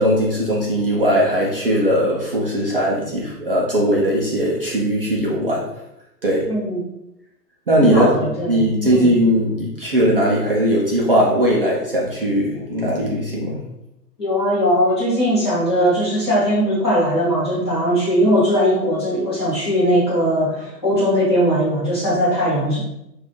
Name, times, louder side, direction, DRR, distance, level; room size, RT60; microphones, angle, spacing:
voice 1, 0.0-5.7 6.2-6.5 7.7-8.1 8.5-13.6, equal, 40° right, -4 dB, 0.4 m, -19 dB
voice 2, 6.5-6.8 7.8-9.1 14.2-22.8, equal, 15° left, -9 dB, 0.6 m, -19 dB
3.8 x 2.5 x 2.9 m, 0.85 s
hypercardioid pair, 160°, 49 cm